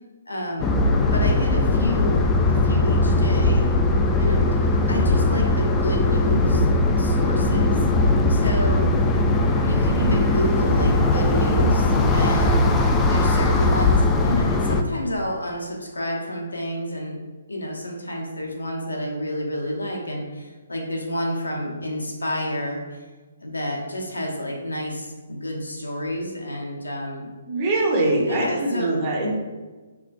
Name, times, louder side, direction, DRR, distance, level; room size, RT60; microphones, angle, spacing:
voice 1, 0.3-0.7 1.1-3.7 4.2-7.8 8.3-8.9 9.6-12.6 13.1-17.2 17.5-23.0 23.4-27.3 28.2-28.9, left 1 dB, 80° left, -1 dB, 0.8 m, -29 dB
sound 1, 0.6-14.8, left 2 dB, 15° left, 0.3 m, -19 dB
voice 2, 27.5-29.4, right 2 dB, 30° right, -3 dB, 1.0 m, -23 dB
4.7 x 3.1 x 2.5 m, 1.3 s
figure-of-eight pair, 135°, 0 cm